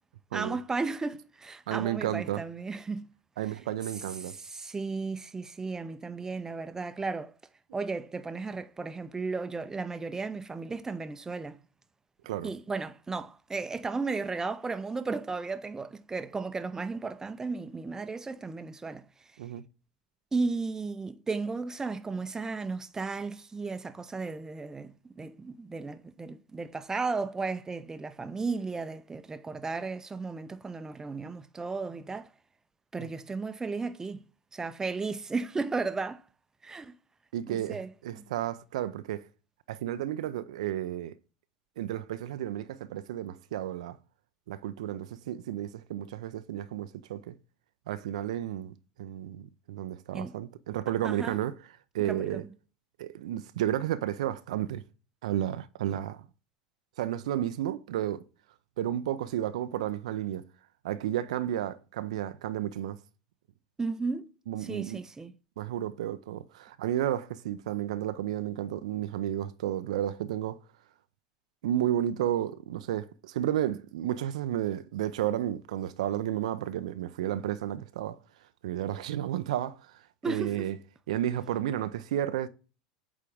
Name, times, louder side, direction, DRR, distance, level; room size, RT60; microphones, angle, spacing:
voice 1, 0.3-3.0 4.2-7.3 7.7-11.6 12.4-19.1 20.3-32.3 32.9-34.2 34.5-36.2 36.6-37.0 37.5-38.2 50.1-50.3 51.0-51.4 52.0-52.5 63.8-64.3 64.6-65.3 80.2-80.7, right 4 dB, 15° right, 0.6 m, -34 dB
voice 2, 1.7-2.4 3.4-4.3 12.2-12.5 19.4-19.6 33.0-33.1 37.3-39.3 39.7-41.1 41.8-44.0 44.5-47.3 47.9-51.5 51.9-52.4 53.0-54.8 55.2-56.3 57.0-58.2 58.8-60.4 60.8-63.0 64.5-65.0 65.6-70.6 71.6-78.2 78.6-80.8 81.1-82.5, right 12 dB, 65° right, 0.5 m, -32 dB
8.5 x 3.7 x 3.4 m
figure-of-eight pair, 80°, 4 cm